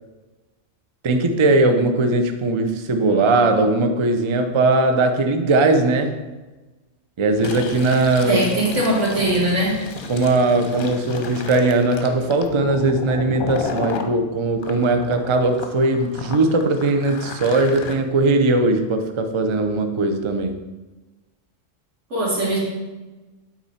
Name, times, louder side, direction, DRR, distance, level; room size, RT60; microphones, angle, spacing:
voice 1, 1.0-6.2 7.2-8.4 10.1-20.6, right 2 dB, 50° right, 0.3 m, -19 dB
Fill (with liquid), 7.3-14.1 14.6-17.9, left 4 dB, 50° left, 0.8 m, -33 dB
voice 2, 8.3-9.8 22.1-22.6, right 1 dB, 70° right, 2.3 m, -20 dB
8.7 x 4.1 x 4.2 m
omnidirectional pair, 1.3 m